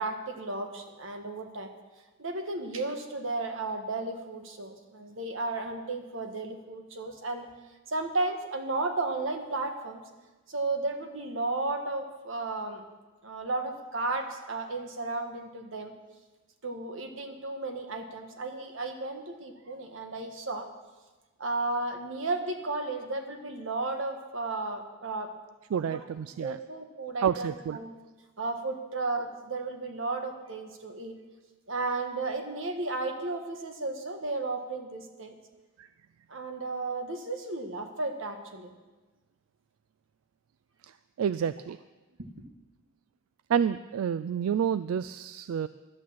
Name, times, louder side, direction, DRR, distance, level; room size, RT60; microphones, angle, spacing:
voice 1, 0.0-1.7 2.2-7.5 7.9-10.0 10.5-12.8 13.2-15.9 16.6-20.7 21.4-25.3 25.7-27.9 28.4-31.2 31.7-35.3 36.3-38.7 42.3-42.4, right 2 dB, 65° right, 5 dB, 1.4 m, -34 dB
voice 2, 25.7-26.6 27.2-27.8 35.8-35.9 41.2-41.8 43.5-45.7, right 8 dB, 85° right, 15 dB, 0.3 m, -29 dB
12.0 x 8.6 x 7.4 m, 1.2 s
head